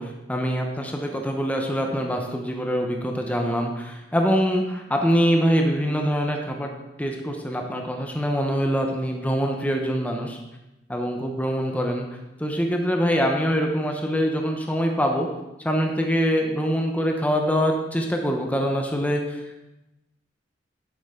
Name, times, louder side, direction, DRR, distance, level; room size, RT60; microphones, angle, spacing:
voice 1, 0.0-6.7 7.0-10.4 10.9-12.1 12.4-15.3 15.6-19.5, equal, 10° left, 2 dB, 0.9 m, -24 dB
9.9 x 8.6 x 3.8 m, 0.96 s
head